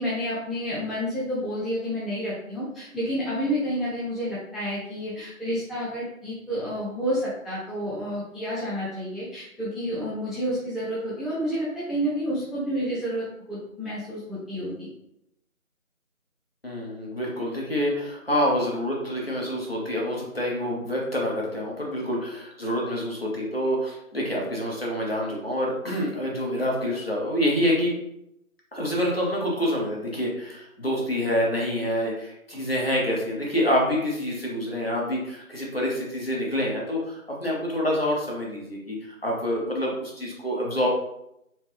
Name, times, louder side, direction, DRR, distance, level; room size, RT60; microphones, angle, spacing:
voice 1, 0.0-14.9, equal, ahead, -9 dB, 0.6 m, -30 dB
voice 2, 16.6-27.9 28.7-40.9, equal, 45° left, -3 dB, 1.0 m, -27 dB
3.3 x 3.0 x 3.3 m, 0.80 s
figure-of-eight pair, 175°, 41 cm